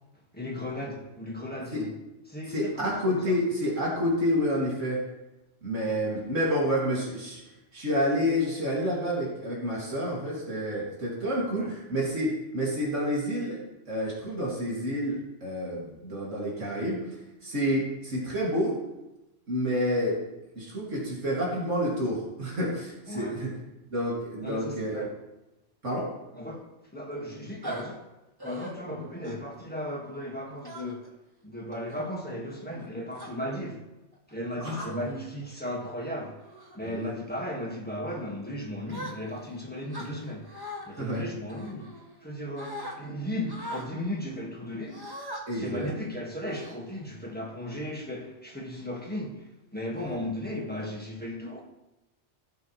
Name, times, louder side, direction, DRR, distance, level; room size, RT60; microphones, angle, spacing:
voice 1, 0.3-1.9 2.3-3.3 11.5-11.7 23.1-23.4 24.4-25.1 26.3-28.1 28.4-31.1 31.4-33.8 34.3-36.4 36.7-40.5 40.8-41.9 42.2-45.1 45.5-51.6, left 1 dB, 10° left, 1.7 m, -36 dB
voice 2, 2.5-5.0 5.6-7.4 7.7-13.6 13.9-17.0 17.4-18.8 19.5-20.2 20.5-23.6 23.9-25.0 25.8-26.1 34.6-34.9 36.8-37.1 40.9-41.2 45.5-45.9, equal, 90° right, 3.0 m, -29 dB
sound 1, 27.6-27.8 28.4-28.7 29.2-29.5 30.6-31.1 31.7-32.0 32.7-33.3 34.1-34.3 34.8-35.2 35.7-35.9 36.4-36.8 37.3-37.6 38.9-39.5 39.9-40.9 41.5-42.3 42.6-42.9 43.5-43.9 44.9-45.4 45.9-46.0 46.5-47.2, equal, 20° right, 1.6 m, -41 dB
16.5 x 7.1 x 3.3 m
omnidirectional pair, 1.2 m